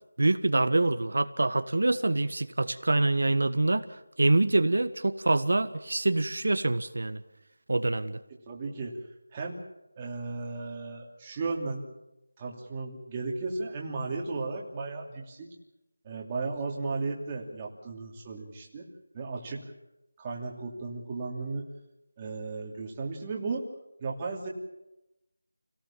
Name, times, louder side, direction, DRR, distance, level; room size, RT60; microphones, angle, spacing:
voice 1, 0.2-7.2 7.7-8.2, right 2 dB, 65° right, 10 dB, 1.5 m, -25 dB
voice 2, 8.5-8.9 9.3-9.6 10.0-11.9 12.4-15.5 16.0-18.9 19.1-19.6 20.2-21.7 22.2-23.6 24.0-24.5, right 3 dB, 15° right, -2 dB, 2.9 m, -35 dB
29.0 x 18.0 x 7.3 m, 0.92 s
figure-of-eight pair, 175°, 0 cm